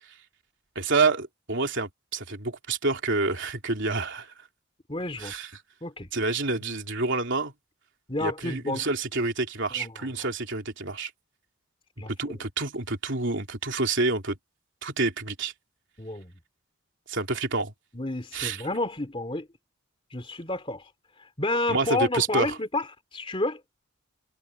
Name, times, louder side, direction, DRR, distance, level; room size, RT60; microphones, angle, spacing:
voice 1, 0.8-4.3 5.2-5.5 6.1-7.5 8.2-11.1 12.1-14.4 14.8-15.5 17.1-17.7 18.3-18.6 21.7-22.6, right 3 dB, 60° right, 3.6 m, -28 dB
voice 2, 4.9-5.3 5.8-6.1 8.1-8.9 9.7-10.3 12.0-12.4 16.0-16.3 17.9-19.5 20.1-20.9 21.2-22.9 23.1-23.6, left 2 dB, 25° left, 2.7 m, -30 dB
head